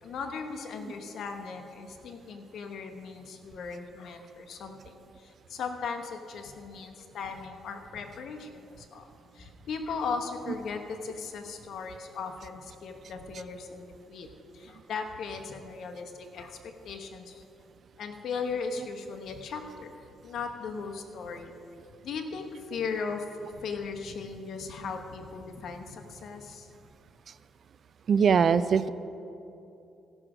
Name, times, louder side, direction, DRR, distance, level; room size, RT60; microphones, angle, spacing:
voice 1, 0.0-4.8 5.2-9.1 9.3-14.3 14.5-16.6 16.8-17.4 18.0-19.9 20.2-21.5 22.0-26.7, left 5 dB, 65° left, 4 dB, 1.0 m, -37 dB
voice 2, 28.1-28.9, right 6 dB, 55° right, 15 dB, 0.4 m, -21 dB
15.5 x 6.2 x 4.9 m, 2.8 s
cardioid pair, 90°, 0 cm